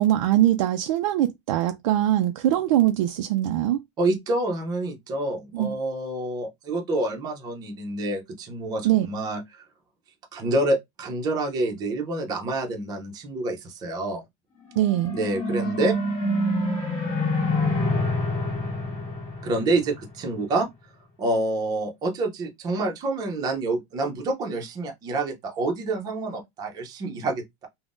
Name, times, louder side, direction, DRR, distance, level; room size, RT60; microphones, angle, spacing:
voice 1, 0.0-3.8 5.5-5.8 8.8-9.1 14.8-15.2, right 13 dB, 85° right, 0.4 m, -22 dB
voice 2, 4.0-9.6 10.3-14.2 15.1-15.9 19.4-20.7 21.2-27.7, right 2 dB, 25° right, 0.6 m, -27 dB
sound 1, 14.7-20.2, left 1 dB, 30° left, 1.5 m, -26 dB
3.5 x 2.1 x 2.5 m
supercardioid pair, 170°, 16 cm